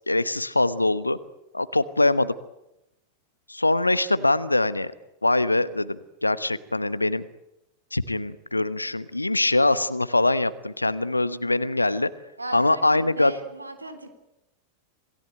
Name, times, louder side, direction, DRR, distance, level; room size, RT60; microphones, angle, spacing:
voice 1, 0.1-1.2 1.5-2.3 3.5-4.9 5.2-7.3 7.9-12.1 12.5-13.3, left 2 dB, 85° left, 15 dB, 1.1 m, -23 dB
voice 2, 12.4-14.1, right 2 dB, 80° right, 9 dB, 3.5 m, -38 dB
27.5 x 18.0 x 9.0 m, 0.89 s
figure-of-eight pair, 90°, 0 cm